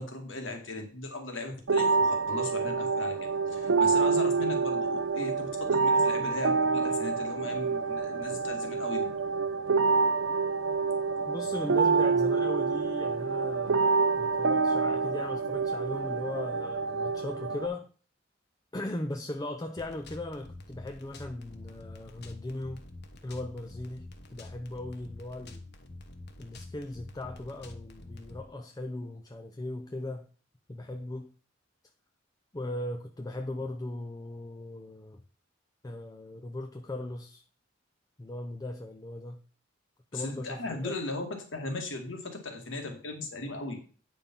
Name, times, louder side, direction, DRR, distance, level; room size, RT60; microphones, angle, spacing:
voice 1, 0.0-9.1 40.1-43.8, left 2 dB, 80° left, 2.3 m, -37 dB
sound 1, 1.7-17.7, right 4 dB, 80° right, 0.7 m, -27 dB
voice 2, 11.3-17.9 18.7-22.8 23.2-25.7 26.4-30.3 30.7-31.3 32.5-35.2 35.8-37.4 38.2-39.4 40.1-40.9, left 1 dB, 20° left, 0.6 m, -38 dB
sound 2, 19.8-28.4, left 2 dB, 60° left, 1.2 m, -47 dB
9.3 x 5.3 x 5.5 m
head